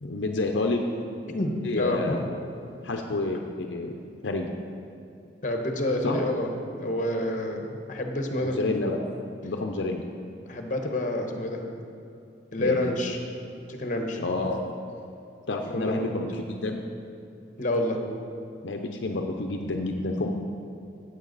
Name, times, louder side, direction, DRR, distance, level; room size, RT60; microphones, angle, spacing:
voice 1, 0.0-0.8 1.6-2.2 2.8-4.0 4.2-4.5 6.0-6.2 8.4-9.1 9.4-10.0 12.6-12.8 14.2-14.6 15.5-16.8 18.6-20.3, left 2 dB, 70° left, 3 dB, 0.6 m, -29 dB
voice 2, 1.3-2.2 5.4-8.6 10.5-11.6 12.5-13.2 13.7-14.2 15.6-16.1 17.6-18.0, left 1 dB, 40° left, 3 dB, 1.0 m, -28 dB
14.0 x 8.1 x 4.1 m, 2.7 s
head